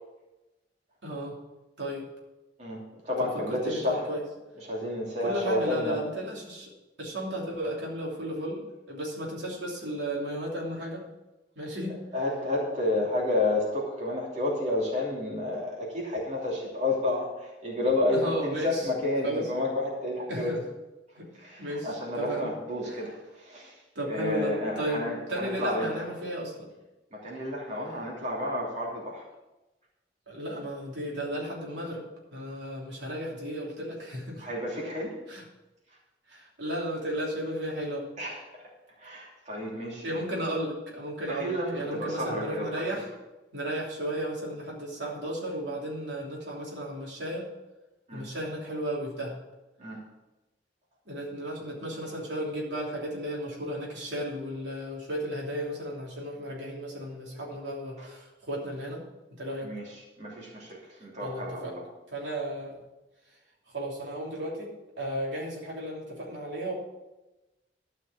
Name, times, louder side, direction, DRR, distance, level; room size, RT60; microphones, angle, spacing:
voice 1, 1.0-1.4 1.8-2.1 3.5-4.2 5.2-6.7 7.0-8.6 8.9-11.0 11.5-12.0 18.1-18.9 19.2-19.5 20.3-20.6 21.2-21.3 21.6-22.5 22.8-23.0 23.9-26.7 30.3-32.0 32.3-34.5 35.3-35.4 36.3-38.1 40.0-43.1 43.5-47.5 48.1-49.4 51.1-59.0 59.3-59.7 61.2-61.7 62.1-62.8 63.7-66.7, right 1 dB, 85° right, -3 dB, 3.2 m, -34 dB
voice 2, 2.6-4.0 4.6-6.0 12.1-20.5 21.4-23.7 24.1-25.9 27.1-29.2 34.4-35.1 38.2-38.6 39.0-40.3 41.3-42.8 48.1-48.2 49.8-50.0 58.0-58.1 59.6-59.9 60.2-61.8, left 1 dB, 45° right, -4 dB, 3.0 m, -30 dB
12.5 x 5.7 x 7.5 m, 1.0 s
head